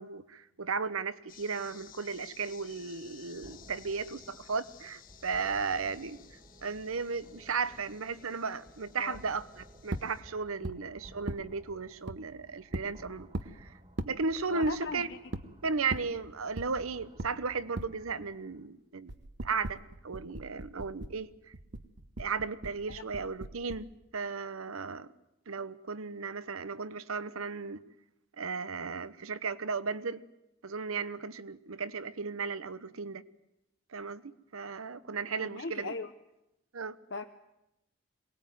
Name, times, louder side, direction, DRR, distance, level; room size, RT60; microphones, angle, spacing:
voice 1, 0.0-6.2 6.6-13.3 13.6-13.7 14.0-15.1 15.6-19.1 19.4-21.3 22.2-23.9 24.1-25.1 25.5-27.8 28.4-30.2 30.6-33.2 33.9-35.9 36.7-37.0, right 4 dB, 85° right, 16 dB, 0.9 m, -35 dB
sound 1, 1.3-10.2, left 8 dB, 40° left, 1.5 m, -56 dB
sound 2, 3.4-18.7, right 1 dB, 30° right, 2.1 m, -57 dB
Bashing Cardboard Box Interior A, 9.9-10.1 10.6-10.8 11.3-11.4 12.1-12.2 12.7-12.9 13.3-13.5 14.0-14.1 14.6-14.8 15.3-15.5 15.9-16.1 16.6-16.7 17.2-17.3 17.8-17.9 19.1-21.2 21.5-23.9, right 1 dB, 55° right, 1.0 m, -38 dB
voice 2, 14.5-15.2 22.9-23.0 35.4-36.1 37.1-37.2, left 3 dB, 60° left, 5 dB, 0.9 m, -38 dB
23.0 x 19.5 x 9.3 m, 0.89 s
head